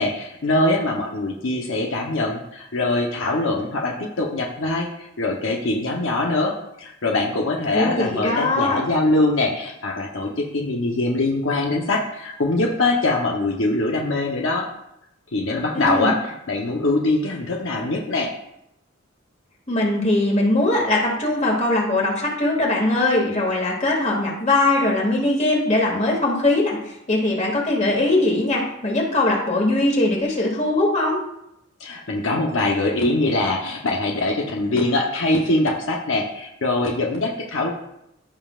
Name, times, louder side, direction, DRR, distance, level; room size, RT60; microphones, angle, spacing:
voice 1, 0.0-6.5 6.8-14.7 15.3-18.3 31.8-37.7, left 2 dB, 80° left, -1 dB, 1.0 m, -23 dB
voice 2, 7.7-8.8 15.7-16.1 19.7-26.8 27.1-31.2, left 2 dB, 35° left, -1 dB, 2.3 m, -21 dB
15.0 x 5.5 x 2.4 m, 0.81 s
head